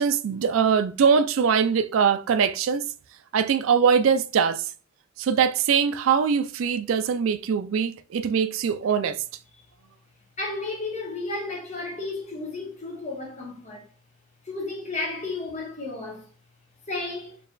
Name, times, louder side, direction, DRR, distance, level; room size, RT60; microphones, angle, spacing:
voice 1, 0.0-2.9 3.3-4.7 5.2-9.2, right 6 dB, 65° right, 0.3 m, -22 dB
voice 2, 10.4-13.9 14.4-16.2 16.9-17.4, left 2 dB, 35° left, 1.3 m, -33 dB
4.5 x 3.1 x 2.4 m
head